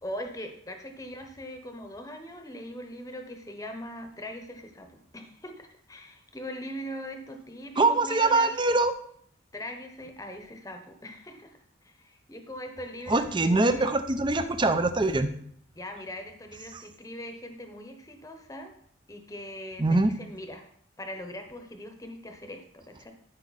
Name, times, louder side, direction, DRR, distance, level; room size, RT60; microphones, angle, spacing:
voice 1, 0.0-8.5 9.5-13.9 15.7-18.7 19.1-20.7 21.0-23.1, equal, 15° left, 5 dB, 0.9 m, -41 dB
voice 2, 7.8-8.9 13.1-15.3 16.7-16.8 19.8-20.1, right 2 dB, 25° right, 10 dB, 0.6 m, -23 dB
13.0 x 5.2 x 4.1 m, 0.65 s
head